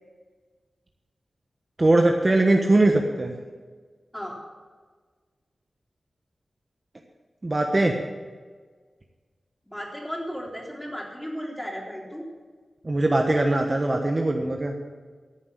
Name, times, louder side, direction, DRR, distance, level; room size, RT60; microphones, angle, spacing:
voice 1, 1.8-3.3 7.4-7.9 12.8-14.7, right 2 dB, 35° right, 2 dB, 1.3 m, -21 dB
voice 2, 9.7-12.3, equal, 10° left, -2 dB, 3.7 m, -35 dB
14.0 x 7.1 x 8.6 m, 1.5 s
wide cardioid pair, 75°, 0 cm